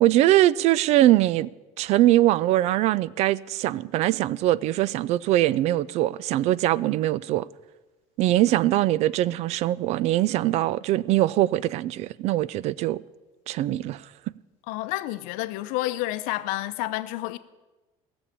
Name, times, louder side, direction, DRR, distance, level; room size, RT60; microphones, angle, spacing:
voice 1, 0.0-1.5 1.8-7.5 8.2-13.0 13.5-14.0, right 15 dB, 55° right, 0.4 m, -22 dB
voice 2, 14.7-17.4, left 16 dB, 90° left, 0.7 m, -29 dB
16.5 x 7.2 x 8.4 m
cardioid pair, 160°, 13 cm